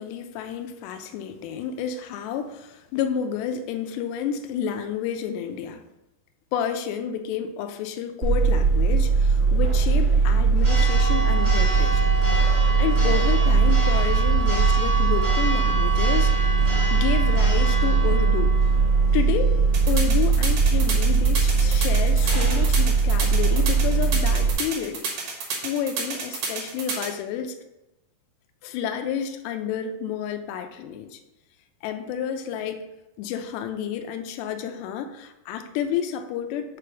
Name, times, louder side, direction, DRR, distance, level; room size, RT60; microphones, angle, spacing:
voice 1, 0.0-5.8 6.5-12.1 12.8-16.5 16.9-18.5 19.1-19.5 19.9-25.3 25.6-27.5 28.6-31.2 31.8-32.9 33.2-36.8, left 8 dB, 80° left, 6 dB, 2.8 m, -30 dB
Church bell, 8.2-24.5, right 4 dB, 20° right, 1.6 m, -20 dB
sound 1, 19.7-27.1, right 4 dB, 65° right, 1.9 m, -30 dB
6.1 x 5.0 x 5.9 m, 0.95 s
omnidirectional pair, 5.0 m